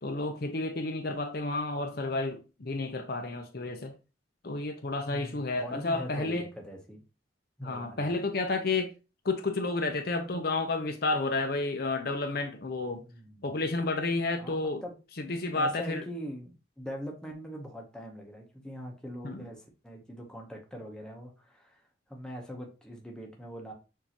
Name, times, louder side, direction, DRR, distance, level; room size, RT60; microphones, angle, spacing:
voice 1, 0.0-3.9 4.4-6.5 7.6-8.9 9.2-13.0 13.4-14.8 15.2-16.0 19.2-19.5, left 3 dB, 55° left, 0.7 m, -31 dB
voice 2, 5.1-7.0 7.6-8.2 13.0-13.5 14.4-15.0 15.5-21.8 22.1-23.7, equal, 5° left, 0.9 m, -42 dB
6.5 x 2.7 x 2.9 m
head